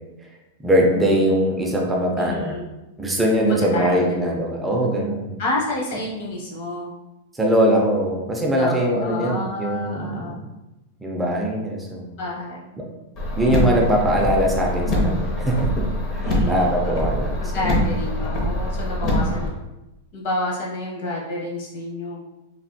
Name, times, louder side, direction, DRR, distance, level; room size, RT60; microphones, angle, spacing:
voice 1, 0.6-2.6 3.0-5.4 7.4-10.4 11.0-12.1 12.8-12.9 13.4-17.5, right 1 dB, 10° right, -1 dB, 0.4 m, -21 dB
voice 2, 2.1-2.6 3.5-4.5 5.4-6.9 8.6-10.4 12.2-12.6 16.2-16.8 17.4-19.5 20.1-22.2, left 2 dB, 55° left, -2 dB, 0.9 m, -29 dB
Car, 13.2-19.5, left 1 dB, 35° left, 0.6 m, -24 dB
3.3 x 2.4 x 2.6 m, 0.98 s
supercardioid pair, 160°, 0 cm